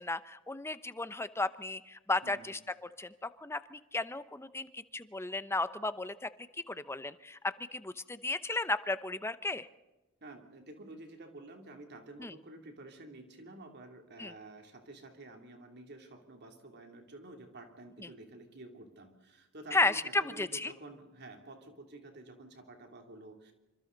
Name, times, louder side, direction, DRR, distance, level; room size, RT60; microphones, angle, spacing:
voice 1, 0.0-2.6 3.0-6.3 6.7-7.4 7.7-9.7 12.2-12.3 14.2-14.3 18.0-18.1 19.7-20.7, left 2 dB, 10° left, 13 dB, 0.8 m, -34 dB
voice 2, 2.2-2.5 10.2-23.5, right 2 dB, 55° right, 4 dB, 3.1 m, -50 dB
27.0 x 25.5 x 4.0 m, 1.1 s
head